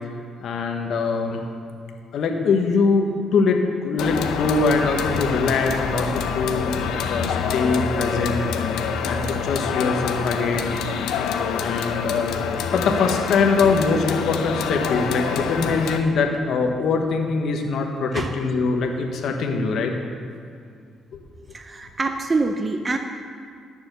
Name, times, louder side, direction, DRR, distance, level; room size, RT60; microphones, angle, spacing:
voice 1, 0.4-1.4 2.1-6.7 7.0-8.4 9.0-10.8 11.1-11.2 11.6-12.4 12.7-19.9, left 4 dB, 70° left, 2 dB, 1.2 m, -22 dB
sound 1, 4.0-16.0, left 6 dB, 90° left, 0.7 m, -26 dB
voice 2, 21.5-23.0, right 3 dB, 30° right, 5 dB, 0.7 m, -25 dB
11.5 x 6.9 x 6.8 m, 2.2 s
cardioid pair, 90°, 0 cm